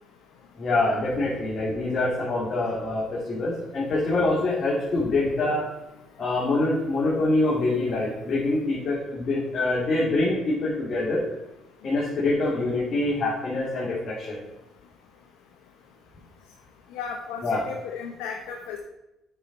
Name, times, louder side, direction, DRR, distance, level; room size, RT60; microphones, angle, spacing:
voice 1, 0.5-5.7 6.2-11.2 11.8-14.4 17.4-17.6, left 2 dB, 50° left, -7 dB, 2.6 m, -25 dB
voice 2, 16.9-18.8, left 6 dB, 90° left, 3 dB, 0.8 m, -35 dB
9.2 x 5.7 x 4.2 m, 0.92 s
supercardioid pair, 80°, 0 cm